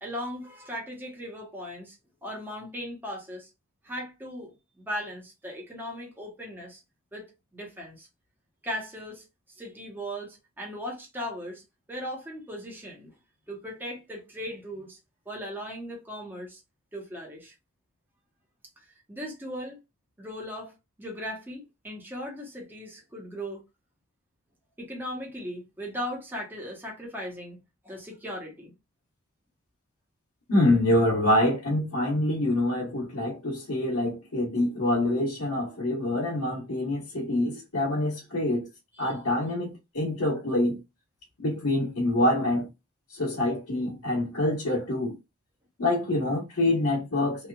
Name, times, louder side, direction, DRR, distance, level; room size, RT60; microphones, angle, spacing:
voice 1, 0.0-2.0 2.2-3.5 3.8-4.5 4.8-6.8 7.1-8.1 8.6-9.2 9.5-11.6 11.9-13.1 13.5-15.0 15.3-16.6 16.9-17.5 19.1-19.8 20.2-20.7 21.0-23.6 24.8-27.6 27.8-28.7 39.0-39.1, equal, 10° right, 0.8 m, -38 dB
voice 2, 30.5-38.7 39.0-40.8 41.4-42.7 43.1-45.1 45.8-47.5, left 1 dB, 90° left, 1.2 m, -26 dB
2.9 x 2.3 x 2.3 m
head